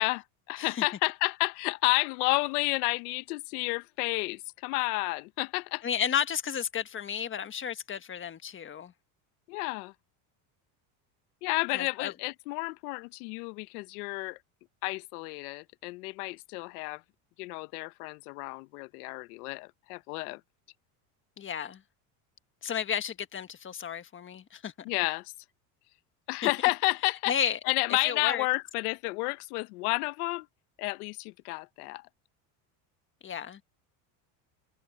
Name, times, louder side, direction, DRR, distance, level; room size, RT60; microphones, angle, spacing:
voice 1, 0.0-5.8 9.5-9.9 11.4-14.4 14.8-17.0 17.4-20.4 24.8-25.3 26.3-27.3 27.7-30.5 30.8-32.0, left 24 dB, 80° left, 1.0 m, -31 dB
voice 2, 5.8-8.9 11.7-12.1 21.4-21.8 22.6-24.7 26.4-26.5 27.3-27.6 28.0-28.4 33.2-33.6, left 8 dB, 25° left, 1.5 m, -32 dB
supercardioid pair, 120°, 44 cm